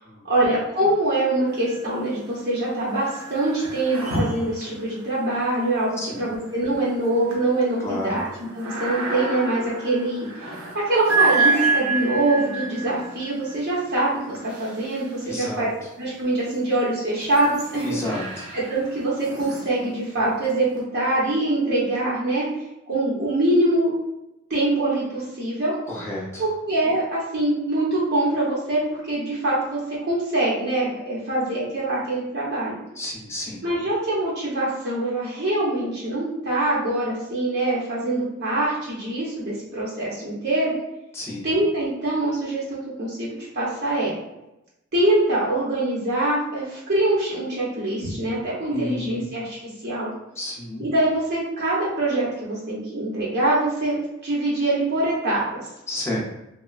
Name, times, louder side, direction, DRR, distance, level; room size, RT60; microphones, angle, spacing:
voice 1, 0.2-8.2 8.5-10.3 10.7-15.7 16.0-18.0 18.5-22.4 22.9-23.9 24.5-25.7 26.4-32.8 33.6-40.7 41.4-43.3 43.5-44.1 44.9-49.6 49.8-50.1 50.8-54.0 54.2-55.4, right 2 dB, 50° right, -6 dB, 0.7 m, -24 dB
sound 1, 1.5-2.2 2.5-15.7 16.3-20.8, right 3 dB, 90° right, 0.7 m, -30 dB
voice 2, 6.0-6.3 7.8-8.2 15.3-15.7 17.8-18.5 25.9-26.4 33.0-33.6 41.1-41.4 48.7-49.2 50.4-50.9 55.9-56.2, left 1 dB, 10° left, -4 dB, 0.5 m, -31 dB
3.0 x 2.0 x 2.4 m, 0.91 s
head